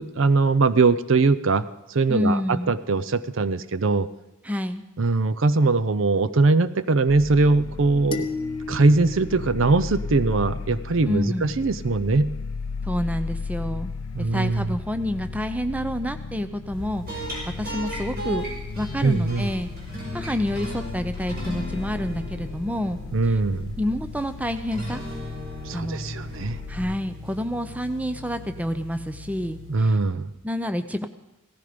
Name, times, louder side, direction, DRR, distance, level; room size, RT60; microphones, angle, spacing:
voice 1, 0.0-4.1 5.0-8.3 8.7-12.3 14.1-14.8 19.0-19.5 23.1-23.7 25.7-26.6 29.7-30.3, right 3 dB, 65° right, 14 dB, 0.6 m, -21 dB
voice 2, 2.1-2.7 4.4-4.8 11.1-11.6 12.8-13.9 14.2-17.3 17.6-18.5 18.8-19.7 20.1-23.0 23.2-23.4 23.8-25.0 25.7-26.0 26.7-30.0 30.4-31.1, left 1 dB, 5° right, 9 dB, 0.6 m, -28 dB
sound 1, 7.1-27.0, left 4 dB, 85° left, 0.5 m, -35 dB
sound 2, 8.1-10.5, left 4 dB, 25° left, 0.9 m, -34 dB
sound 3, 16.7-30.3, equal, 45° right, 5.6 m, -37 dB
17.0 x 14.5 x 5.1 m, 0.93 s
head